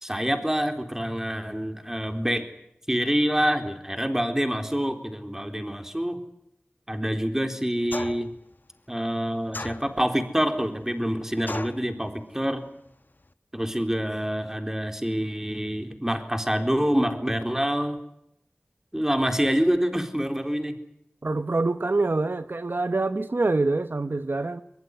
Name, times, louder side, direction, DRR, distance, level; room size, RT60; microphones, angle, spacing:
voice 1, 0.0-2.4 2.9-6.2 6.9-8.3 8.9-12.6 13.5-18.0 18.9-20.8, equal, 15° right, 7 dB, 4.0 m, -26 dB
sound 1, 7.9-8.4 9.5-10.2 11.5-11.9, left 2 dB, 60° left, 1.1 m, -35 dB
voice 2, 21.2-24.6, right 3 dB, 70° right, 11 dB, 1.1 m, -25 dB
23.0 x 22.5 x 9.7 m, 0.79 s
wide cardioid pair, 50°, 4 cm